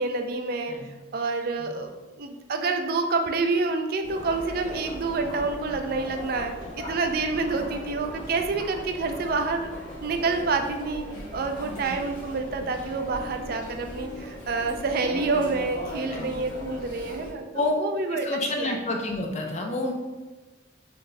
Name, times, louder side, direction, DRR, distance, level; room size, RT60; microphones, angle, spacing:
voice 1, 0.0-1.9 2.2-9.7 10.0-11.0 11.3-18.3 18.6-18.8, right 3 dB, 50° right, 5 dB, 0.3 m, -28 dB
Chatter, 4.0-17.3, equal, 60° left, 1.3 m, -39 dB
voice 2, 11.6-12.0 16.0-16.3 17.5-17.7 18.1-19.9, left 2 dB, 35° left, 1 dB, 0.5 m, -29 dB
4.0 x 2.6 x 3.2 m, 1.2 s
head